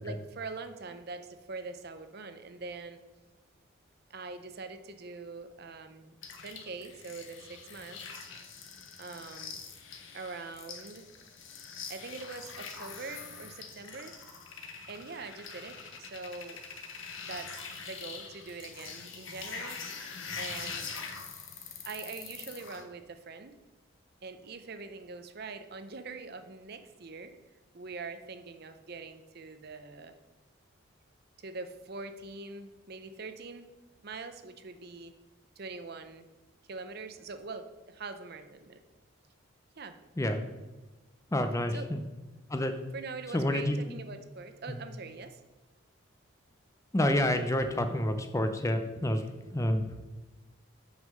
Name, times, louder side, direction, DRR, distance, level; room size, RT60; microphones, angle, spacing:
voice 1, 0.0-3.0 4.1-6.2 6.4-8.0 9.0-9.6 10.1-11.1 11.9-14.2 14.9-16.6 17.2-19.8 20.4-20.8 21.8-23.6 24.2-27.3 27.7-30.2 31.4-33.7 34.0-35.1 35.6-36.3 36.7-38.8 39.8-40.0 41.7-41.9 42.9-45.4, right 4 dB, 50° right, 9 dB, 0.6 m, -43 dB
sound 1, 6.2-22.8, left 5 dB, 65° left, 1.1 m, -44 dB
voice 2, 41.3-42.0 42.5-42.7 43.3-43.8 44.7-44.8 46.9-49.2 49.5-49.8, left 1 dB, 15° left, 7 dB, 0.5 m, -28 dB
6.1 x 5.5 x 6.4 m, 1.2 s
head